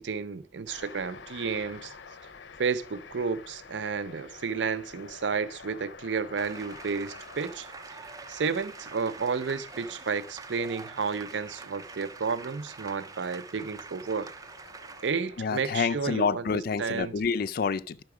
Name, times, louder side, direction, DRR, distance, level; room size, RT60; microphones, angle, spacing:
voice 1, 0.0-1.9 2.6-7.7 8.3-14.3 15.0-16.4 16.8-17.1, right 5 dB, 85° right, 0.5 m, -31 dB
sound 1, 0.6-16.3, left 5 dB, 85° left, 0.7 m, -50 dB
sound 2, 6.4-15.1, right 4 dB, 20° right, 0.5 m, -45 dB
voice 2, 15.4-18.0, left 5 dB, 55° left, 0.4 m, -28 dB
11.0 x 5.9 x 4.8 m
head